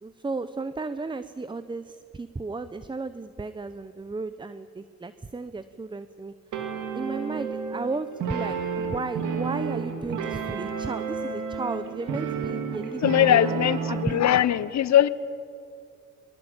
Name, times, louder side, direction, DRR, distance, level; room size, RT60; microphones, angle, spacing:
voice 1, 0.0-6.6 6.9-13.6 13.9-14.4, right 3 dB, 15° right, 13 dB, 0.8 m, -34 dB
sound 1, 6.5-14.2, right 6 dB, 80° right, 2.7 m, -31 dB
voice 2, 13.0-15.1, left 11 dB, 65° left, 17 dB, 1.0 m, -20 dB
22.0 x 22.0 x 8.8 m, 2.4 s
cardioid pair, 90°, 30 cm